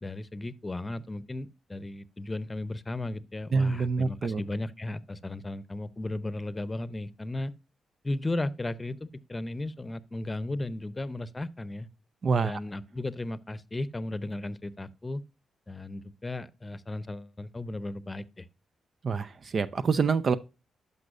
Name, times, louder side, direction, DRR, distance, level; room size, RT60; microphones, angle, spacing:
voice 1, 0.0-7.5 8.0-11.9 12.4-15.2 15.7-18.5, left 2 dB, 25° left, 0.7 m, -35 dB
voice 2, 3.5-4.4 12.2-12.6 19.0-20.4, right 5 dB, 50° right, 0.5 m, -26 dB
12.0 x 5.5 x 2.5 m
hypercardioid pair, 45°, 0 cm